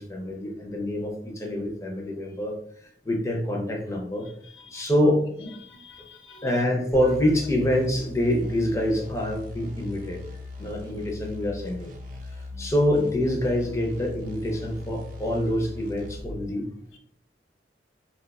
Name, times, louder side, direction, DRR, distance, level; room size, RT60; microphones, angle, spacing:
voice 1, 0.0-4.3 4.7-5.2 6.4-10.2 10.6-11.9 12.3-16.6, left 1 dB, 15° left, 1 dB, 0.6 m, -26 dB
voice 2, 4.4-5.1 5.4-6.6, left 2 dB, 85° left, 2 dB, 0.8 m, -45 dB
sound 1, 6.9-16.4, left 3 dB, 50° right, 0.6 m, -40 dB
2.7 x 2.3 x 4.0 m, 0.65 s
head